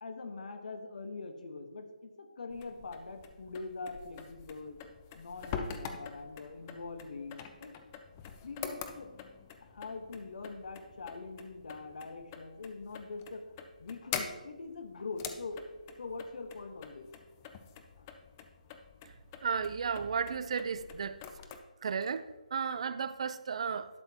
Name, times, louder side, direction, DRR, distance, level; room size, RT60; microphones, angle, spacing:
voice 1, 0.0-4.8 5.2-7.7 8.4-9.1 9.6-13.4 13.8-15.6 16.0-17.1 18.0-18.1, left 3 dB, 65° left, 7 dB, 1.2 m, -43 dB
sound 1, 2.5-21.6, left 7 dB, 20° left, 0.4 m, -46 dB
voice 2, 19.4-21.2 21.8-23.9, right 6 dB, 45° right, 14 dB, 0.4 m, -34 dB
11.5 x 6.7 x 2.9 m, 1.2 s
hypercardioid pair, 165°, 4 cm